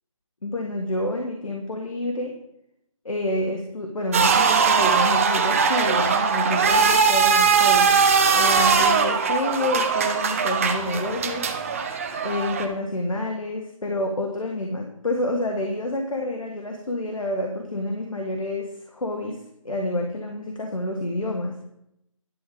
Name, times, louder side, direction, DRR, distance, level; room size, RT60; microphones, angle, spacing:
voice 1, 0.4-2.4 3.0-8.0 8.3-11.5 12.2-19.4 19.6-21.6, left 1 dB, 75° left, 2 dB, 1.6 m, -28 dB
sound 1, 4.1-12.7, right 5 dB, 25° right, 0.7 m, -20 dB
11.0 x 6.8 x 5.0 m, 0.79 s
figure-of-eight pair, 160°, 17 cm